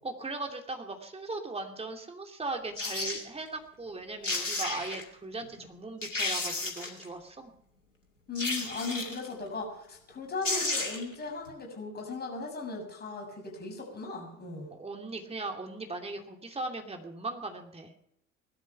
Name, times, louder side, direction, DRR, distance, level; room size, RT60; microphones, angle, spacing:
voice 1, 0.0-7.5 14.7-17.9, right 3 dB, 15° right, 3 dB, 2.7 m, -38 dB
sound 1, 2.8-3.2 4.0-4.1 4.2-5.0 5.6-5.7 6.0-7.0 8.4-9.3 10.1-10.2 10.4-11.1 11.5-11.6, left 2 dB, 85° left, 2.4 m, -32 dB
voice 2, 8.3-14.7, left 3 dB, 25° left, 1 dB, 6.5 m, -37 dB
19.5 x 12.5 x 5.8 m, 0.76 s
figure-of-eight pair, 65°, 37 cm